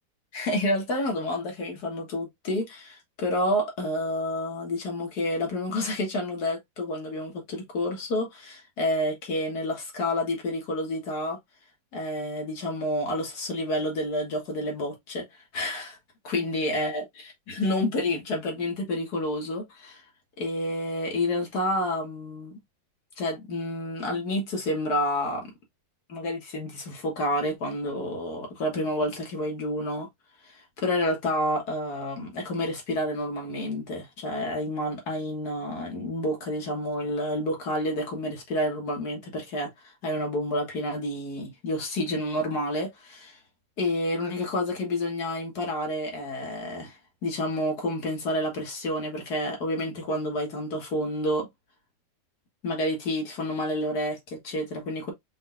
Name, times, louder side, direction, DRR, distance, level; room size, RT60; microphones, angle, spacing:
voice 1, 0.3-11.4 11.9-16.0 16.2-20.0 20.4-22.6 23.2-25.5 26.1-30.1 30.4-43.4 43.8-51.5 52.6-55.1, left 1 dB, 70° left, 2.1 m, -29 dB
5.1 x 3.9 x 2.3 m
omnidirectional pair, 1.8 m